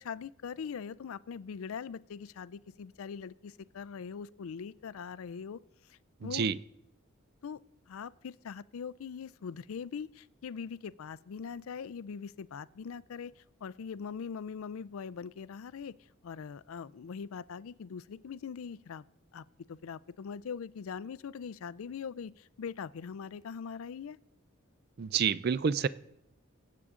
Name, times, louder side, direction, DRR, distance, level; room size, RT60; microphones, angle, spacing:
voice 1, 0.0-5.6 5.9-6.5 7.4-7.6 7.9-15.9 16.2-19.0 19.3-24.2, left 6 dB, 80° left, 20 dB, 0.4 m, -42 dB
voice 2, 6.2-6.6 25.0-25.9, right 6 dB, 50° right, 18 dB, 0.4 m, -28 dB
22.0 x 8.4 x 3.7 m, 0.79 s
head